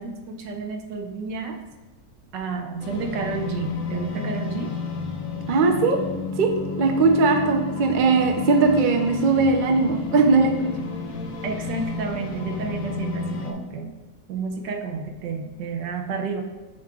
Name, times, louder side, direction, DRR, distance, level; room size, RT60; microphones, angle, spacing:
voice 1, 0.0-1.6 2.3-4.7 11.4-13.9 14.3-16.4, right 4 dB, 90° right, 4 dB, 1.4 m, -31 dB
sound 1, 2.8-13.5, left 3 dB, 60° left, 1.1 m, -32 dB
voice 2, 5.5-6.0 6.4-6.5 6.8-10.7, right 3 dB, 70° right, 3 dB, 0.4 m, -19 dB
7.0 x 6.0 x 2.4 m, 1.2 s
omnidirectional pair, 1.9 m